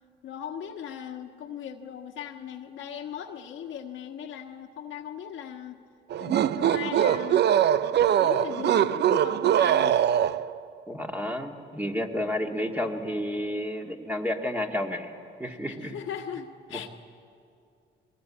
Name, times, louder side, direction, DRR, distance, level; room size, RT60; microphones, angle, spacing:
voice 1, 0.2-5.8 6.2-7.5 8.1-10.0 15.5-16.9, left 9 dB, 75° left, 4 dB, 1.5 m, -38 dB
sound 1, 6.1-10.6, right 10 dB, 60° right, 0.5 m, -22 dB
voice 2, 10.9-15.1 15.4-16.0 16.7-16.9, left 1 dB, 10° right, 2 dB, 2.0 m, -31 dB
22.0 x 18.5 x 8.6 m, 2.5 s
cardioid pair, 90°, 20 cm